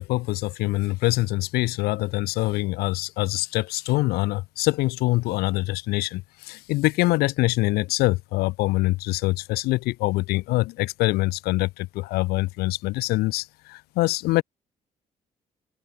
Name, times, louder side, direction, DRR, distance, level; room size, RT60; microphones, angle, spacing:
voice 1, 0.0-14.4, left 20 dB, 90° left, 0.8 m, -24 dB
open air
cardioid pair, 80°, 16 cm